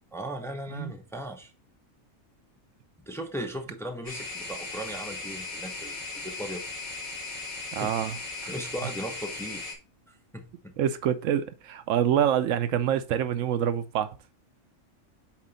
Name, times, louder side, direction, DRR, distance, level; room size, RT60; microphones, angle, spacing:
voice 1, 0.1-1.5 3.1-6.6 7.7-7.9 8.5-9.6 10.1-10.7, right 1 dB, ahead, 0.8 m, -37 dB
sound 1, 4.0-9.7, left 3 dB, 85° left, 2.8 m, -37 dB
voice 2, 7.7-8.2 10.8-14.1, right 9 dB, 75° right, 0.9 m, -26 dB
7.4 x 4.2 x 3.9 m
omnidirectional pair, 1.4 m